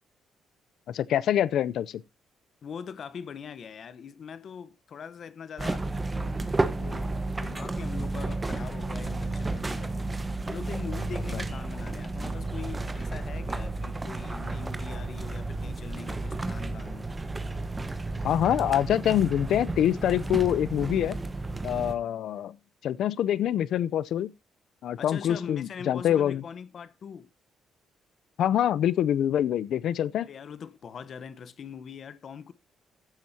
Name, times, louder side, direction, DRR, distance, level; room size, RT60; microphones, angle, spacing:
voice 1, 0.9-2.0 11.3-11.4 18.2-21.2 21.6-22.6 22.8-24.3 24.8-26.4 28.4-30.3, left 11 dB, 75° left, 0.6 m, -25 dB
voice 2, 2.6-6.4 6.7-7.1 7.4-10.1 10.4-17.1 25.0-27.3 30.2-32.5, left 6 dB, 55° left, 1.0 m, -42 dB
sound 1, 5.6-21.9, right 2 dB, 20° right, 1.2 m, -32 dB
15.0 x 7.6 x 2.8 m
cardioid pair, 90°, 0 cm